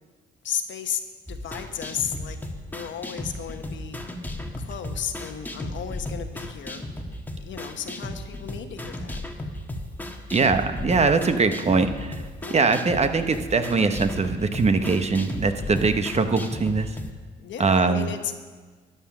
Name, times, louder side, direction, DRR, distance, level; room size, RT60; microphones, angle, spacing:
voice 1, 0.4-1.0 1.3-2.4 2.6-4.0 4.6-6.9 7.4-9.2 12.4-12.7 17.4-18.3, left 9 dB, 70° left, 8 dB, 1.1 m, -34 dB
sound 1, 1.3-17.1, left 1 dB, 10° left, 1.3 m, -35 dB
voice 2, 10.3-12.2 12.5-16.9 17.6-18.1, right 4 dB, 35° right, 8 dB, 0.9 m, -22 dB
12.5 x 9.0 x 6.0 m, 1.4 s
cardioid pair, 90°, 20 cm